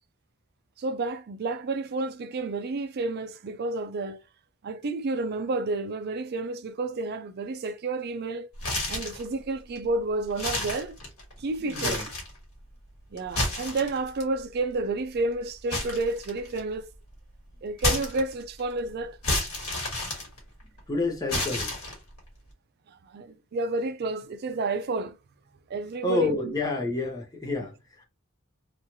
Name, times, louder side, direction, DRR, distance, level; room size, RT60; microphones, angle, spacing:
voice 1, 0.8-4.2 4.6-8.5 8.9-11.0 11.4-12.0 13.1-16.9 17.6-19.2 22.9-25.2 25.7-26.5, right 2 dB, 50° right, 0.4 m, -30 dB
sound 1, 8.6-9.3 9.8-9.9 10.3-11.3 11.7-12.4 13.2-14.2 15.7-16.7 17.8-18.6 19.2-20.8 21.3-22.2, left 2 dB, 85° left, 1.6 m, -30 dB
voice 2, 11.6-12.1 20.9-21.7 26.0-28.1, left 2 dB, 20° left, 0.7 m, -29 dB
3.0 x 2.3 x 2.6 m
head